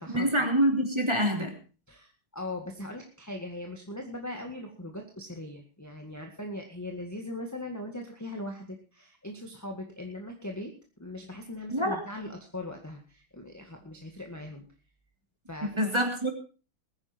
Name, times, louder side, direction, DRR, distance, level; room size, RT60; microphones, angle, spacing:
voice 1, 0.1-1.5 11.7-12.0 15.7-16.3, equal, 10° right, 3 dB, 3.0 m, -26 dB
voice 2, 1.9-14.6 15.5-15.9, left 1 dB, 10° left, 2 dB, 1.6 m, -40 dB
21.0 x 9.7 x 4.4 m, 0.35 s
omnidirectional pair, 2.3 m